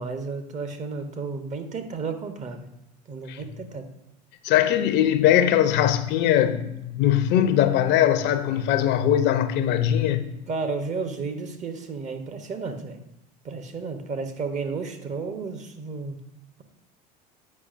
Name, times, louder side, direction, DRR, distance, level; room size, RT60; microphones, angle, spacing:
voice 1, 0.0-2.7 3.1-3.9 10.5-13.0 13.4-16.2, right 4 dB, 35° right, 0.8 m, -32 dB
voice 2, 4.4-10.3, left 11 dB, 60° left, 0.5 m, -21 dB
8.3 x 4.8 x 2.4 m
hypercardioid pair, 80°, 21 cm